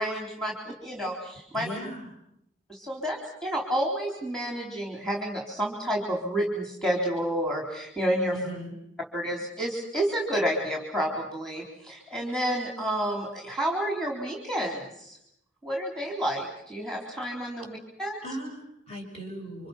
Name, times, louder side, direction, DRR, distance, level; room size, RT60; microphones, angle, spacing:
voice 1, 0.0-1.7 2.7-8.3 9.1-15.2 15.6-18.2, right 1 dB, 5° left, 0 dB, 3.8 m, -30 dB
voice 2, 1.5-2.1 8.3-8.8 18.2-19.7, right 1 dB, 30° left, 1 dB, 6.4 m, -38 dB
29.5 x 25.5 x 6.1 m, 0.77 s
head